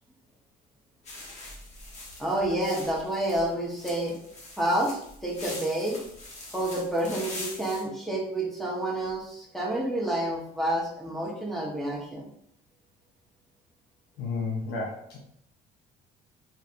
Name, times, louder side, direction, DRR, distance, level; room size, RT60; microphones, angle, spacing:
sound 1, 1.1-7.8, left 2 dB, 45° left, 1.2 m, -43 dB
voice 1, 2.2-4.2 4.6-6.0 6.5-12.3, right 1 dB, ahead, -3 dB, 1.2 m, -29 dB
voice 2, 14.2-15.2, left 4 dB, 85° left, -2 dB, 0.7 m, -32 dB
4.3 x 3.3 x 2.6 m, 0.71 s
cardioid pair, 110°, 17 cm